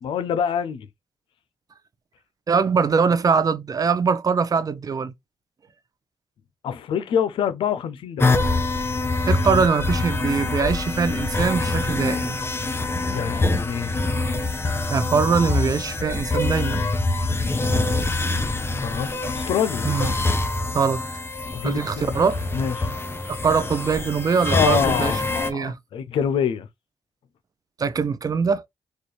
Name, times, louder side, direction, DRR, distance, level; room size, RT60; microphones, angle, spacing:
voice 1, 0.0-0.9 6.6-8.4 13.1-14.0 18.8-19.9 21.5-22.2 22.5-22.9 24.5-26.7, left 8 dB, 85° left, 0.5 m, -26 dB
voice 2, 2.5-5.1 9.3-12.4 14.9-16.9 19.8-20.1 20.7-21.1 21.6-22.4 23.3-25.1 25.4-25.8 27.8-28.6, right 5 dB, 45° right, 0.6 m, -22 dB
sound 1, 8.2-25.5, left 2 dB, 30° left, 0.7 m, -25 dB
4.2 x 2.4 x 3.2 m
cardioid pair, 75°, 9 cm